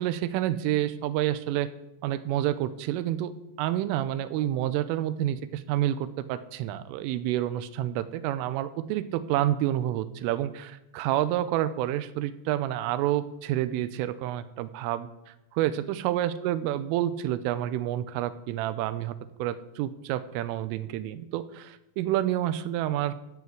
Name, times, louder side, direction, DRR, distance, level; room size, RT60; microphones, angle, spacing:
voice 1, 0.0-1.7 2.0-3.3 3.6-23.1, right 12 dB, 85° right, 14 dB, 3.2 m, -29 dB
13.5 x 8.2 x 8.2 m, 0.92 s
omnidirectional pair, 5.8 m